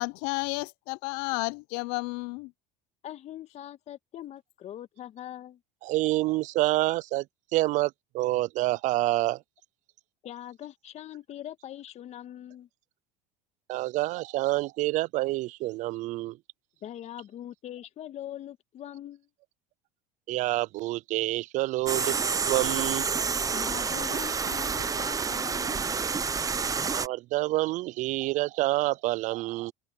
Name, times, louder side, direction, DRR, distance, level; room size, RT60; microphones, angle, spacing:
voice 1, 0.0-2.5, left 26 dB, 70° left, 0.8 m, -32 dB
voice 2, 3.0-5.6 10.2-12.7 16.8-19.3 23.5-25.9, left 11 dB, 50° left, 1.9 m, -42 dB
voice 3, 5.8-7.2 7.5-9.4 13.7-16.4 20.3-22.2 22.5-23.1 26.9-29.7, right 18 dB, 55° right, 0.5 m, -27 dB
sound 1, 21.9-27.1, right 5 dB, 25° right, 1.0 m, -29 dB
hypercardioid pair, 80°, 15 cm